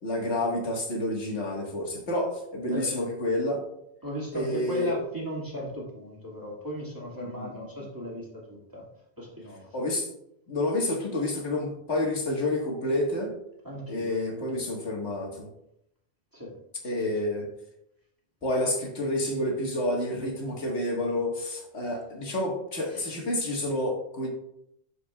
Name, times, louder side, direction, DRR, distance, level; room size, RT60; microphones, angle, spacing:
voice 1, 0.0-3.6 4.3-4.9 7.2-7.6 9.7-10.1 10.5-13.3 13.9-15.5 16.8-17.5 18.4-24.3, left 1 dB, 85° left, 0 dB, 1.8 m, -29 dB
voice 2, 2.7-3.0 4.0-8.9 9.2-9.8 13.6-14.7 16.3-16.6 16.8-17.1 22.9-23.1, left 1 dB, 20° right, -4 dB, 1.9 m, -37 dB
12.5 x 5.0 x 2.3 m, 0.78 s
omnidirectional pair, 1.1 m